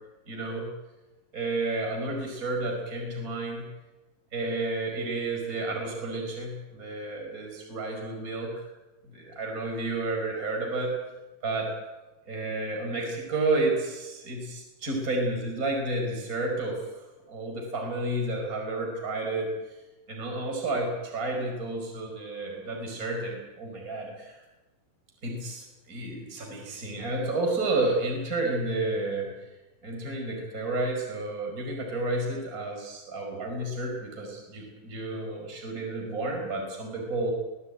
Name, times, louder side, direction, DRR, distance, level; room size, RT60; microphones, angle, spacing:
voice 1, 0.3-0.7 1.3-3.7 4.3-8.6 9.0-10.9 11.4-11.7 12.3-16.8 17.3-19.5 20.1-24.4 25.2-29.3 29.8-37.3, right 2 dB, 20° right, 1 dB, 5.4 m, -31 dB
22.0 x 18.5 x 9.1 m, 1.1 s
omnidirectional pair, 4.2 m